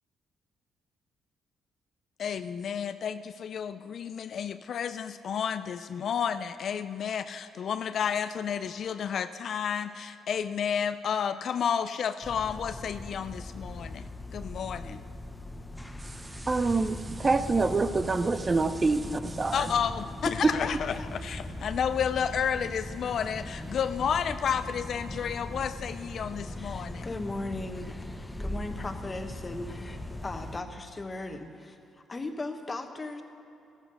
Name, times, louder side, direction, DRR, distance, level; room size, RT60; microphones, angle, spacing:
voice 1, 2.2-15.0 19.5-27.1, left 7 dB, 60° left, 11 dB, 0.4 m, -31 dB
sound 1, 12.2-30.6, left 1 dB, 10° left, 0.9 m, -40 dB
voice 2, 16.5-19.7, right 3 dB, 25° right, 10 dB, 0.6 m, -26 dB
voice 3, 26.6-31.8 32.1-33.2, left 2 dB, 25° left, 6 dB, 1.3 m, -38 dB
14.0 x 14.0 x 5.4 m, 2.9 s
cardioid pair, 90°, 0 cm